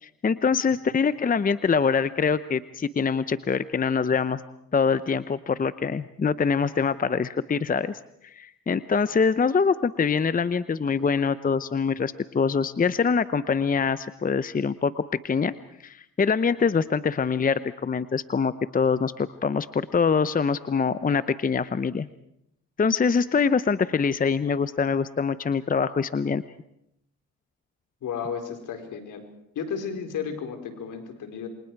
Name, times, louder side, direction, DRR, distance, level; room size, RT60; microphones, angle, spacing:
voice 1, 0.0-4.4 4.7-15.5 15.8-22.1 22.8-26.4, left 5 dB, 25° left, 14 dB, 0.8 m, -24 dB
voice 2, 28.0-29.2 29.5-31.5, left 6 dB, 65° left, 5 dB, 4.4 m, -33 dB
29.0 x 25.0 x 4.7 m, 0.77 s
supercardioid pair, 70°, 33 cm